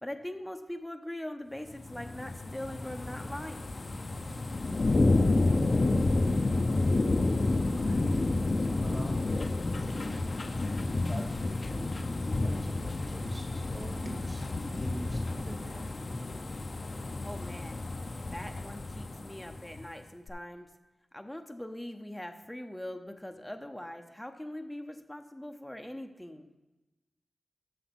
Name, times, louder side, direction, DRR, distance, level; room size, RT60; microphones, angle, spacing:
voice 1, 0.0-3.7 17.2-17.8 18.3-20.7 21.1-26.5, left 1 dB, 10° left, 5 dB, 0.7 m, -41 dB
sound 1, 1.7-19.8 20.3-20.4, left 2 dB, 50° left, 0.6 m, -30 dB
voice 2, 4.3-4.8 7.8-9.2 9.8-11.3 11.6-14.5 14.7-16.0, right 1 dB, 35° right, 1 dB, 2.1 m, -45 dB
7.9 x 6.4 x 6.1 m, 1.1 s
wide cardioid pair, 80°, 0 cm